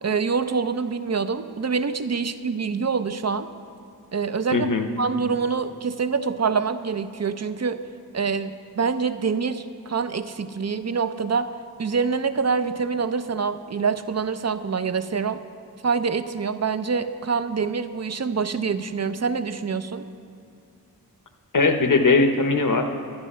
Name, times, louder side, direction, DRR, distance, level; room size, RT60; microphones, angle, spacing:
voice 1, 0.0-3.5 4.1-7.8 8.1-11.5 11.8-15.4 15.8-20.1, right 5 dB, 45° right, 11 dB, 0.5 m, -26 dB
voice 2, 4.5-4.9 21.5-22.9, left 3 dB, 55° left, 6 dB, 1.0 m, -19 dB
11.5 x 11.0 x 5.5 m, 2.4 s
wide cardioid pair, 70°, 38 cm